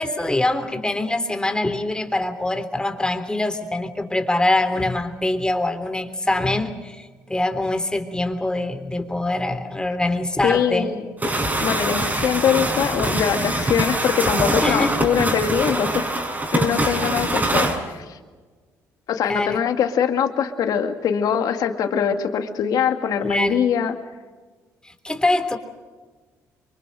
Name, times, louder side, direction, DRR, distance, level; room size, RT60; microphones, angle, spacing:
voice 1, 0.0-10.9 14.6-15.0 19.3-19.6 23.2-23.6 24.8-25.6, left 2 dB, 15° left, 8 dB, 3.2 m, -24 dB
voice 2, 10.4-11.1 11.6-16.1 16.5-18.2 19.1-24.0, left 8 dB, 70° left, 6 dB, 2.1 m, -22 dB
sound 1, 11.2-17.8, right 1 dB, 25° right, 6.3 m, -23 dB
25.0 x 24.0 x 6.4 m, 1.4 s
supercardioid pair, 70°, 7 cm